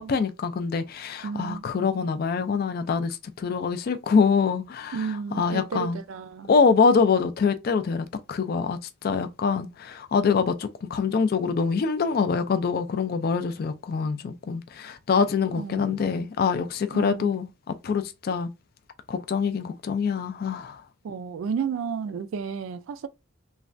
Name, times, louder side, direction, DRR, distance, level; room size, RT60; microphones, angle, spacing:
voice 1, 0.0-5.1 5.4-6.0 6.5-18.5 19.1-20.8, left 5 dB, 45° left, 0.3 m, -25 dB
voice 2, 1.2-1.6 4.9-6.5 15.6-16.0 16.9-17.3 21.0-23.1, right 6 dB, 70° right, 0.3 m, -32 dB
3.2 x 2.2 x 2.5 m
head